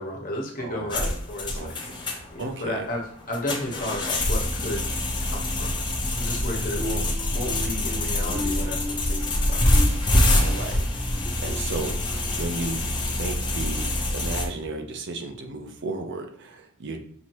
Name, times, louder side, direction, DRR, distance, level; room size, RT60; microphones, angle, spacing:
voice 1, 0.0-1.8 2.3-4.9 5.2-5.8 6.1-9.6, left 1 dB, 40° left, -1 dB, 1.3 m, -33 dB
voice 2, 0.6-1.0 1.5-1.7 2.1-2.8 10.3-12.8 13.2-17.0, right 3 dB, 55° right, 5 dB, 0.7 m, -34 dB
sound 1, 0.9-14.4, left 1 dB, 20° left, 0.9 m, -25 dB
sound 2, 6.8-12.4 12.8-13.1 13.6-13.8, left 1 dB, 10° right, 1.0 m, -37 dB
6.0 x 2.9 x 3.0 m, 0.65 s
head